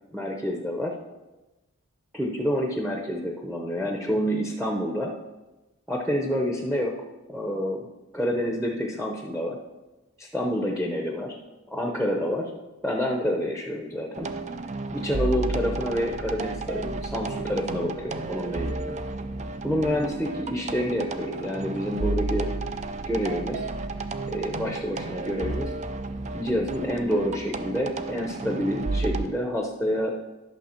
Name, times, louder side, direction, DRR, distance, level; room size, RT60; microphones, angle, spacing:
voice 1, 0.1-0.9 2.1-5.1 5.9-7.0 7.3-7.9 8.1-9.6 10.2-11.4 11.7-12.5 12.8-14.3 14.9-18.9 19.6-22.5 23.1-23.6 24.3-25.7 26.3-30.1, equal, ahead, 1 dB, 0.7 m, -28 dB
sound 1, 14.2-29.3, right 3 dB, 30° right, 0.4 m, -32 dB
11.5 x 6.3 x 4.4 m, 1.1 s
head